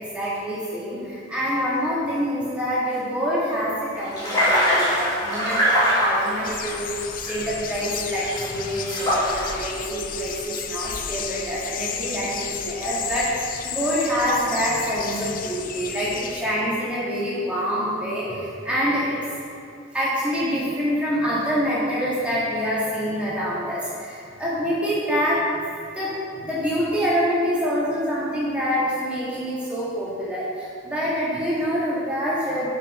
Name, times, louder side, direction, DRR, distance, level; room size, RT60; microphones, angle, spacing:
voice 1, 0.0-7.0 7.3-19.2 19.9-25.6 25.9-32.8, equal, 5° right, -9 dB, 1.8 m, -26 dB
sound 1, 4.0-7.8 8.2-9.6, equal, 20° left, 2.0 m, -22 dB
sound 2, 6.4-16.4, left 8 dB, 45° left, 0.4 m, -33 dB
5.7 x 5.7 x 5.4 m, 2.3 s
head